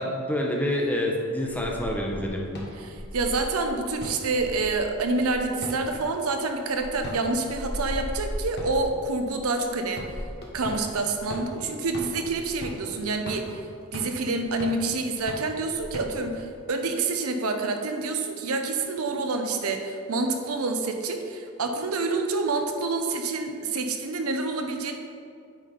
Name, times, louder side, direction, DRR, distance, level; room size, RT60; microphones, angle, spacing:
voice 1, 0.0-2.5, left 1 dB, 5° left, 0 dB, 0.8 m, -27 dB
sound 1, 1.5-16.4, equal, 50° left, 1.3 m, -38 dB
voice 2, 2.8-10.0 10.5-13.7 13.9-24.9, right 3 dB, 75° right, 5 dB, 0.8 m, -27 dB
9.1 x 4.3 x 5.0 m, 2.4 s
head